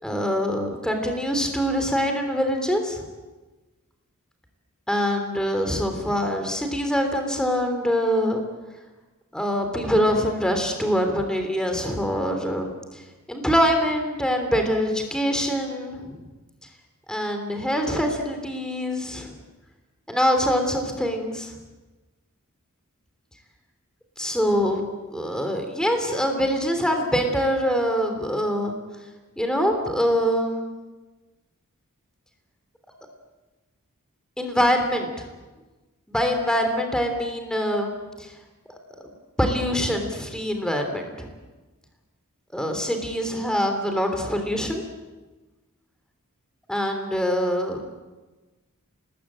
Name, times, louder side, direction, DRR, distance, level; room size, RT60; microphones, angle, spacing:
voice 1, 0.0-3.1 4.9-8.4 9.3-13.0 13.3-16.2 17.1-19.3 20.1-21.5 24.2-24.8 25.1-28.7 29.4-30.7 34.4-35.3 36.1-38.3 38.7-38.8 39.4-41.3 42.5-44.8 46.7-47.8, equal, 5° left, 4 dB, 3.2 m, -24 dB
29.5 x 20.0 x 8.8 m, 1.2 s
head